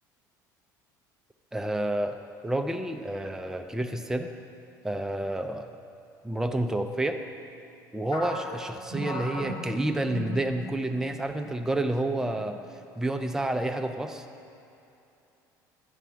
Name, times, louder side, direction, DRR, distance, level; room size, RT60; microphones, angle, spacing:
voice 1, 1.5-4.3 4.8-5.7 6.2-7.2 7.9-14.3, right 1 dB, 5° right, 5 dB, 0.5 m, -29 dB
sound 1, 8.1-11.0 11.3-11.5 12.1-12.6, left 1 dB, 55° left, 1.9 m, -36 dB
9.9 x 3.3 x 6.2 m, 2.7 s
hypercardioid pair, 65°, 10 cm